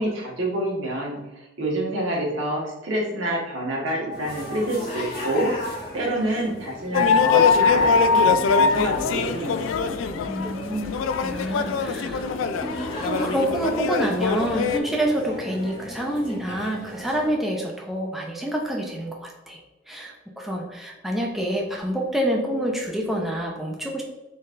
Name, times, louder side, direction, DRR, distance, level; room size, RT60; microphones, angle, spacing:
voice 1, 0.0-9.7, right 1 dB, 90° right, -3 dB, 1.4 m, -27 dB
sound 1, 4.1-17.3, left 1 dB, 45° left, 1.4 m, -37 dB
sound 2, 6.9-14.8, left 5 dB, 80° left, 0.3 m, -22 dB
voice 2, 10.3-19.6 19.9-24.0, equal, ahead, -1 dB, 0.5 m, -27 dB
4.1 x 3.9 x 2.5 m, 1.0 s
head